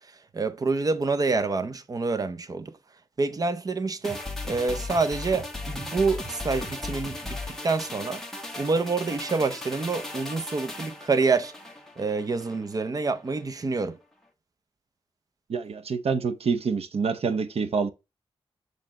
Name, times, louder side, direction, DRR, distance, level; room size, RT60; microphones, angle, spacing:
voice 1, 0.3-2.7 3.2-4.2 4.4-8.2 8.6-11.5 12.0-14.0, right 4 dB, 35° right, 0.6 m, -27 dB
sound 1, 4.0-12.6 12.9-13.1, left 2 dB, 5° left, 1.1 m, -37 dB
voice 2, 15.5-17.9, right 5 dB, 70° right, 0.8 m, -27 dB
6.8 x 3.3 x 5.8 m
wide cardioid pair, 175°, 11 cm